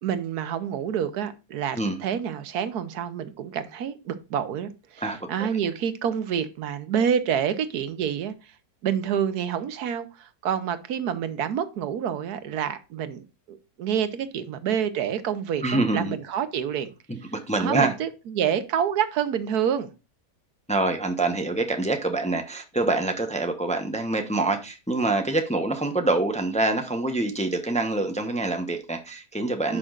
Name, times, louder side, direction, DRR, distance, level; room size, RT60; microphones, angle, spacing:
voice 1, 0.0-8.3 8.8-16.9 17.6-19.9 29.7-29.8, right 8 dB, 90° right, 1.4 m, -28 dB
voice 2, 5.0-5.3 15.6-16.2 17.1-17.9 20.7-29.8, right 2 dB, 5° left, 0.7 m, -25 dB
11.0 x 6.0 x 2.5 m
omnidirectional pair, 1.6 m